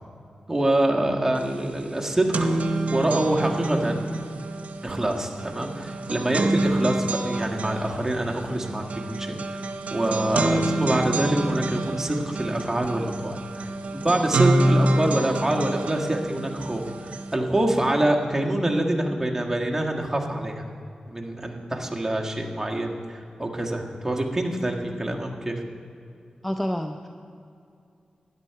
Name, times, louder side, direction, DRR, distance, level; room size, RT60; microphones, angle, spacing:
voice 1, 0.5-2.5 2.9-4.0 4.8-8.8 9.1-9.4 9.9-20.6 21.1-25.6, right 1 dB, 15° right, 0 dB, 1.6 m, -25 dB
sound 1, 1.4-1.5 1.8-17.3, right 2 dB, 80° right, 0.8 m, -27 dB
voice 2, 26.4-27.1, equal, 5° left, 6 dB, 0.6 m, -28 dB
13.0 x 9.9 x 4.7 m, 2.5 s
cardioid pair, 50°, 2 cm